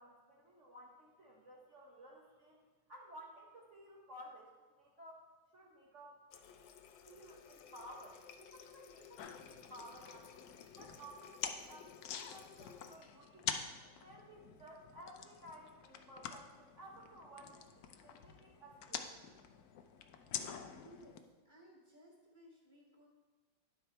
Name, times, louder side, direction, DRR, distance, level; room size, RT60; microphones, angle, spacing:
voice 1, 0.0-2.6 2.9-6.2 7.1-17.7 18.0-19.4, equal, 45° right, -3 dB, 1.2 m, -56 dB
Water tap faucet, 6.3-13.0, left 7 dB, 85° left, 1.4 m, -57 dB
sound 1, 9.2-21.2, left 8 dB, 70° left, 0.9 m, -47 dB
voice 2, 20.7-23.1, equal, 15° left, -4 dB, 1.3 m, -60 dB
10.5 x 6.1 x 4.3 m, 1.4 s
omnidirectional pair, 2.1 m